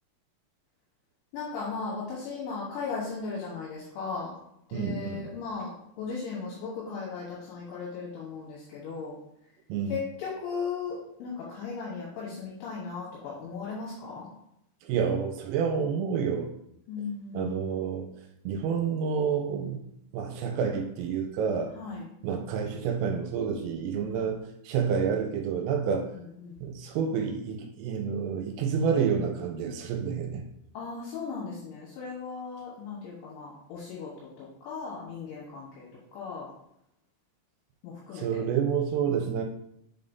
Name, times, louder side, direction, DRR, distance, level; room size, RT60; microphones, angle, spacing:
voice 1, 1.3-4.3 4.7-5.7 6.0-9.2 9.9-14.3 16.9-17.5 21.8-22.1 24.1-24.3 26.1-26.6 30.8-34.1 34.4-35.9 36.1-36.5 37.8-38.4, left 5 dB, 70° left, -6 dB, 3.4 m, -37 dB
voice 2, 4.7-5.3 9.7-9.9 14.9-16.5 17.3-18.1 18.5-19.8 20.1-21.7 22.2-26.1 26.6-30.4 38.2-39.4, right 6 dB, 85° right, 4 dB, 3.4 m, -29 dB
7.3 x 5.3 x 2.7 m, 0.78 s
omnidirectional pair, 5.9 m